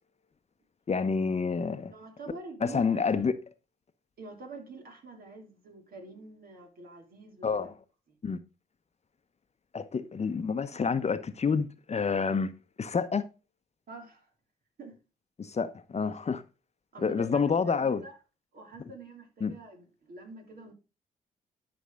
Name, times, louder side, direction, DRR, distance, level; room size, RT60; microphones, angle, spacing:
voice 1, 0.9-1.9 2.6-3.3 7.4-7.7 8.2-8.4 9.7-12.5 12.8-13.2 15.4-16.4 17.0-18.0 19.4-19.5, left 5 dB, 35° left, 1.0 m, -28 dB
voice 2, 1.9-3.3 4.2-7.7 8.1-8.2 13.9-14.3 14.8-15.0 16.9-18.2 18.5-20.7, right 2 dB, 55° right, 3.1 m, -46 dB
11.5 x 5.3 x 3.7 m
hypercardioid pair, 40°, 18 cm